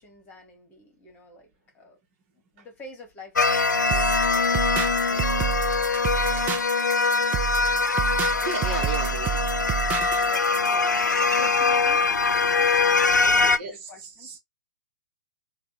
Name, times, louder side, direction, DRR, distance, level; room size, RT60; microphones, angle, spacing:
voice 1, 0.0-1.5 1.7-2.0 2.3-6.2 6.9-7.1 10.2-11.0 11.3-12.8 13.3-14.4, left 2 dB, 20° left, 1.5 m, -47 dB
sound 1, 3.4-13.6, left 4 dB, 75° left, 0.5 m, -22 dB
sound 2, 3.9-10.8, right 11 dB, 15° right, 0.4 m, -30 dB
voice 2, 8.4-9.4 13.2-13.7 14.2-14.4, right 4 dB, 40° right, 1.2 m, -34 dB
3.4 x 2.4 x 4.0 m
figure-of-eight pair, 115°, 10 cm